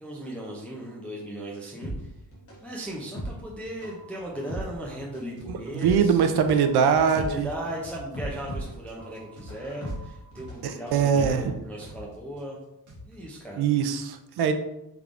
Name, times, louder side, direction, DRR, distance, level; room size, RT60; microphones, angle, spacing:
voice 1, 0.0-2.1 2.6-6.2 7.0-12.6 13.1-13.7, right 1 dB, 5° left, -4 dB, 0.4 m, -37 dB
sound 1, 1.8-12.0 12.3-12.4, right 1 dB, 35° left, 1.1 m, -38 dB
sound 2, 5.4-5.6 5.9-6.1 6.4-6.6 6.9-8.6 8.9-9.0 9.4-9.6 9.9-10.1 10.4-10.6 10.9-12.4 12.9-13.3, left 1 dB, 50° right, 1.2 m, -45 dB
voice 2, 5.5-7.5 10.6-11.5 13.6-14.5, right 7 dB, 75° right, 7 dB, 0.5 m, -22 dB
3.5 x 3.3 x 2.4 m, 0.88 s
wide cardioid pair, 155°, 39 cm